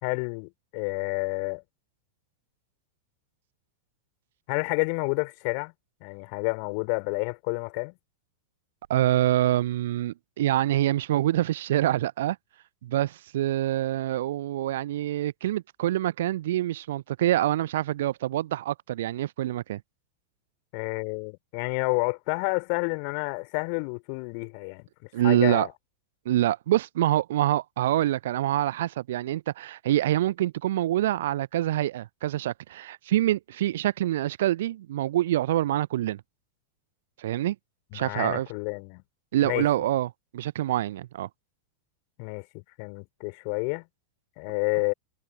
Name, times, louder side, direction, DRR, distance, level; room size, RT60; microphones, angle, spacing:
voice 1, 0.0-1.6 4.5-5.7 6.0-7.9 20.7-24.9 25.2-25.7 37.9-39.0 39.4-39.7 42.2-43.8 44.4-44.9, left 40 dB or more, 45° left, 4.0 m, -29 dB
voice 2, 8.9-12.4 12.8-19.8 25.1-25.7 26.3-36.2 37.2-37.6 37.9-38.5 39.3-41.3, right 13 dB, 55° right, 0.6 m, -26 dB
figure-of-eight pair, 90°, 0 cm